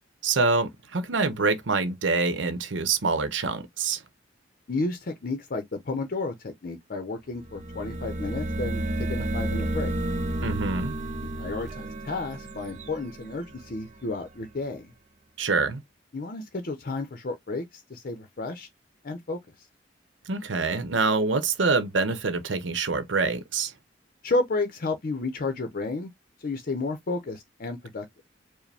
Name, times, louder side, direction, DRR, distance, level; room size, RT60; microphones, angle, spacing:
voice 1, 0.2-4.0 10.4-10.9 15.4-15.8 20.3-23.7, right 4 dB, 85° right, 0.8 m, -25 dB
voice 2, 4.7-9.9 11.4-14.9 16.1-18.7 19.0-19.4 24.2-26.1 26.4-28.0, left 3 dB, 50° left, 0.6 m, -32 dB
sound 1, 7.4-14.1, right 1 dB, 40° right, 0.6 m, -31 dB
4.9 x 2.1 x 3.3 m
head